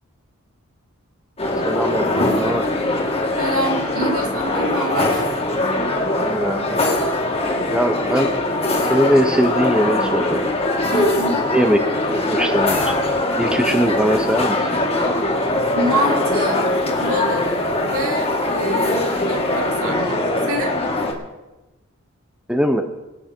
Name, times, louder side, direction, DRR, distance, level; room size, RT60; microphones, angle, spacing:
sound 1, 1.4-21.1, left 2 dB, 30° left, 2.2 m, -21 dB
voice 1, 1.6-2.1 2.4-2.7 6.2-6.8 7.7-8.3 8.9-10.4 11.4-11.8 12.1-13.0 13.4-14.9 22.5-22.8, equal, 5° right, 6 dB, 0.8 m, -20 dB
voice 2, 3.4-5.2 10.9-11.5 15.7-16.7 17.0-17.6 17.9-20.7, right 1 dB, 80° right, 2 dB, 2.7 m, -26 dB
23.5 x 8.9 x 4.5 m, 1.1 s
head